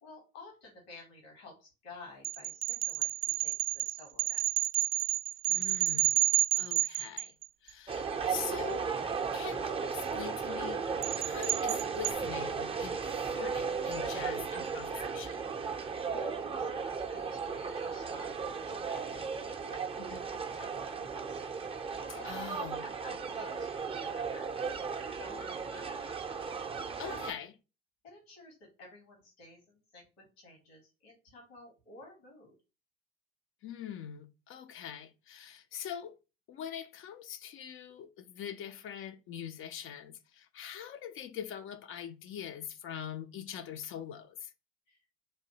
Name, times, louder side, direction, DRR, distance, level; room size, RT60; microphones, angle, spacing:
voice 1, 0.0-3.1 3.4-4.4 16.2-20.2 20.6-22.4 22.8-26.1 26.9-27.3 28.0-30.1 30.4-32.5 44.9-45.0, left 3 dB, 70° left, 1.5 m, -53 dB
sound 1, 2.2-7.7 11.0-12.1, right 18 dB, 65° right, 0.5 m, -30 dB
voice 2, 5.5-6.3 6.6-7.3 7.6-8.9 9.3-15.5 20.0-20.4 22.2-22.8 27.0-27.5 33.6-36.2 36.5-44.5, left 9 dB, 40° left, 0.4 m, -43 dB
sound 2, 7.9-27.3, right 5 dB, 20° right, 0.5 m, -36 dB
4.2 x 2.6 x 2.8 m
figure-of-eight pair, 60°, 32 cm